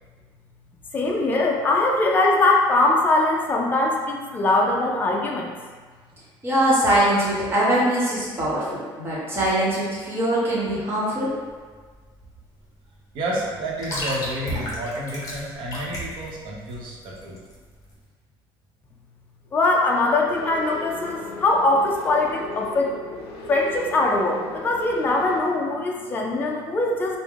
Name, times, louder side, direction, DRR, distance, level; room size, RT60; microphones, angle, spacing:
voice 1, 0.9-5.5 19.5-22.9 23.5-27.2, left 2 dB, 20° left, -1 dB, 0.4 m, -21 dB
voice 2, 6.4-11.3, right 1 dB, 25° right, -8 dB, 0.9 m, -22 dB
sound 1, 11.3-18.0, equal, 35° left, 0.8 m, -35 dB
voice 3, 13.1-17.4, right 1 dB, 65° right, -4 dB, 0.8 m, -30 dB
sound 2, 20.3-25.4, left 4 dB, 80° left, 0.5 m, -37 dB
3.4 x 2.0 x 3.5 m, 1.5 s
cardioid pair, 170°, 9 cm